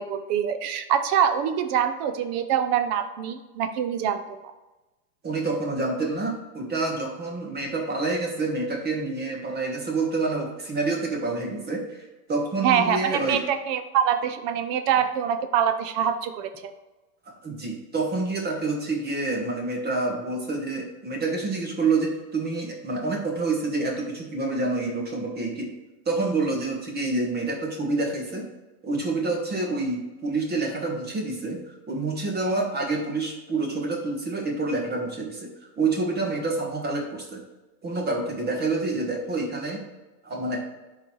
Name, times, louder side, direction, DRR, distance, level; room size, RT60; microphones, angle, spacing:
voice 1, 0.0-4.4 12.6-16.7, right 8 dB, 40° right, 9 dB, 0.6 m, -25 dB
voice 2, 5.2-13.4 17.3-25.7 26.0-28.4 28.8-31.6 31.9-35.5 35.8-37.4 37.8-39.8 40.2-40.6, right 3 dB, 20° right, 0 dB, 1.3 m, -27 dB
11.0 x 4.0 x 3.2 m, 1.1 s
hypercardioid pair, 120°, 47 cm